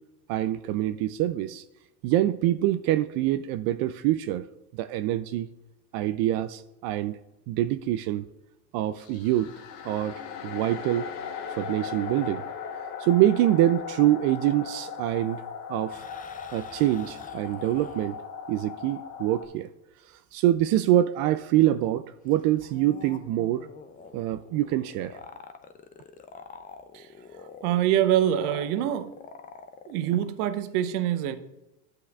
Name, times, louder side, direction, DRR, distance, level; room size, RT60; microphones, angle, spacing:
voice 1, 0.3-1.6 2.0-4.5 4.7-5.5 5.9-7.2 7.5-8.2 8.7-9.5 9.8-11.1 11.5-12.4 13.0-15.4 15.7-16.0 16.5-18.2 18.5-19.7 20.3-23.7 24.1-25.2, right 13 dB, 50° right, 11 dB, 0.5 m, -25 dB
sound 1, 9.0-19.5, left 6 dB, 80° left, 1.2 m, -38 dB
sound 2, 15.9-18.2 22.3-30.3, left 5 dB, 20° left, 0.5 m, -47 dB
voice 2, 27.6-29.1 29.9-31.4, right 11 dB, 70° right, 11 dB, 0.8 m, -25 dB
11.5 x 7.9 x 2.4 m, 0.93 s
hypercardioid pair, 100°, 47 cm